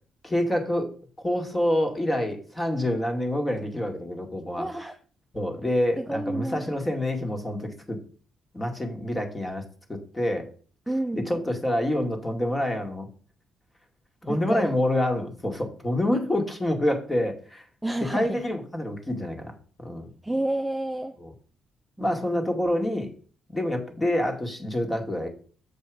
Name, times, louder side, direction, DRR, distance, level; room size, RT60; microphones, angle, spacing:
voice 1, 0.2-0.9 1.2-4.6 5.3-8.0 8.5-9.6 9.9-10.5 11.1-13.1 14.3-17.6 18.1-19.5 19.8-20.1 21.2-21.3 22.0-23.1 23.5-25.3, left 1 dB, 20° left, 3 dB, 2.1 m, -27 dB
voice 2, 4.6-4.9 6.0-6.8 10.9-11.3 14.2-14.7 17.8-18.4 20.2-21.2 22.0-22.5, right 1 dB, 5° right, 4 dB, 0.7 m, -30 dB
7.7 x 5.2 x 4.9 m, 0.42 s
cardioid pair, 90°, 0 cm